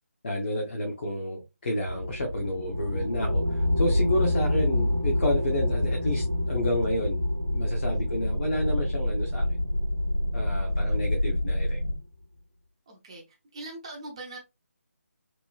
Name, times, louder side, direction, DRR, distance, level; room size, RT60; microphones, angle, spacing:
voice 1, 0.2-7.2 7.5-9.6 10.3-11.8, left 1 dB, 40° left, 0.6 m, -30 dB
sound 1, 1.8-11.8, left 1 dB, 90° right, 0.8 m, -29 dB
sound 2, 5.1-12.0, left 1 dB, 60° left, 1.0 m, -30 dB
voice 2, 7.9-8.3 10.7-11.0 12.9-14.4, right 2 dB, 20° right, 0.5 m, -43 dB
3.0 x 2.1 x 2.2 m
figure-of-eight pair, 155°, 8 cm